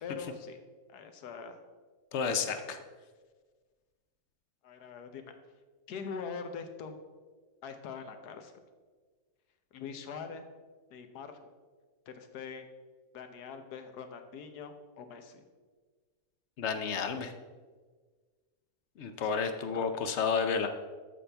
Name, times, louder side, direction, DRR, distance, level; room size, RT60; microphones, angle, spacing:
voice 1, 0.0-0.6 0.9-1.6 4.6-5.4 5.9-6.9 7.6-8.5 9.7-10.4 10.9-11.5 12.1-12.7 13.1-15.4 19.3-19.9, left 6 dB, 80° left, 7 dB, 1.3 m, -43 dB
voice 2, 2.1-2.8 16.6-17.3 19.0-20.7, left 5 dB, 60° left, 8 dB, 0.8 m, -31 dB
13.0 x 5.7 x 3.4 m, 1.4 s
omnidirectional pair, 1.7 m